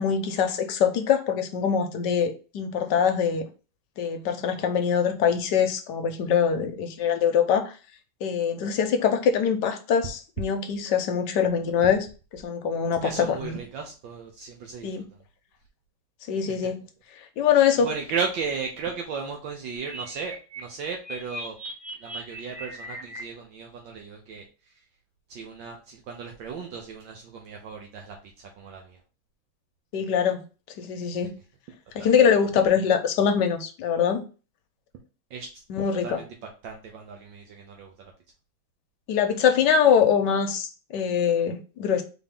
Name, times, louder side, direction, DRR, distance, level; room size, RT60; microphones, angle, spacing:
voice 1, 0.0-3.4 4.0-7.7 8.2-12.1 12.3-13.5 14.8-15.0 16.3-16.8 17.4-17.9 29.9-30.4 30.8-31.3 31.9-34.2 35.7-36.2 39.1-42.0, left 7 dB, 70° left, 1.2 m, -23 dB
voice 2, 13.0-15.0 17.5-21.6 22.0-24.5 25.3-28.2 28.6-29.0 32.0-32.1 35.3-35.6 36.0-36.3 36.6-38.1, right 5 dB, 70° right, 1.4 m, -35 dB
sound 1, 19.8-23.2, right 1 dB, 20° right, 2.0 m, -39 dB
4.1 x 3.4 x 3.6 m
omnidirectional pair, 2.2 m